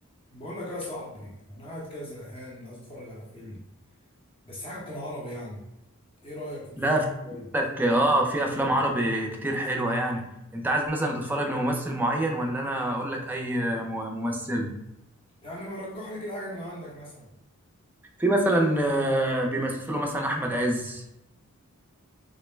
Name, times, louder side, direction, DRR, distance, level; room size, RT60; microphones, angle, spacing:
voice 1, 0.3-3.6 4.5-5.6 6.2-6.8 7.2-7.5 15.4-17.3, left 1 dB, 25° left, -6 dB, 0.8 m, -38 dB
voice 2, 7.5-10.2 10.5-14.7 18.2-21.0, right 1 dB, 10° right, 1 dB, 0.4 m, -26 dB
3.8 x 2.0 x 3.2 m, 0.86 s
head